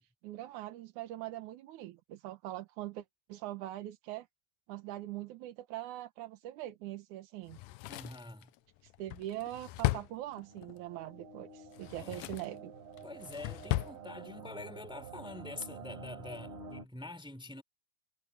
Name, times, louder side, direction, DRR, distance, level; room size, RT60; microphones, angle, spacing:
voice 1, 0.2-3.0 3.3-4.3 4.7-7.6 8.8-12.7, right 14 dB, 70° right, 2.1 m, -42 dB
Drawer open or close, 7.5-10.8 11.7-12.6 13.0-14.0 14.3-14.4, left 17 dB, 85° left, 1.9 m, -36 dB
voice 2, 7.9-8.5 12.0-12.2 13.0-17.6, left 2 dB, ahead, 2.6 m, -45 dB
sound 1, 10.1-16.9, right 4 dB, 85° right, 5.1 m, -49 dB
omnidirectional pair, 4.3 m